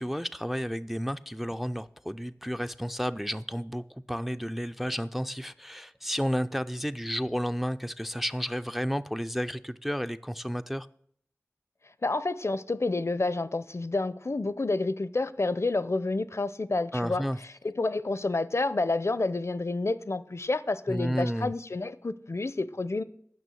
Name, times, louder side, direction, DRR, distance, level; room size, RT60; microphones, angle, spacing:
voice 1, 0.0-10.9 16.9-17.4 20.9-21.5, equal, 5° right, 0.3 m, -32 dB
voice 2, 12.0-17.3 17.6-23.0, left 2 dB, 60° left, 0.5 m, -29 dB
9.4 x 6.2 x 7.7 m
wide cardioid pair, 50°, 5 cm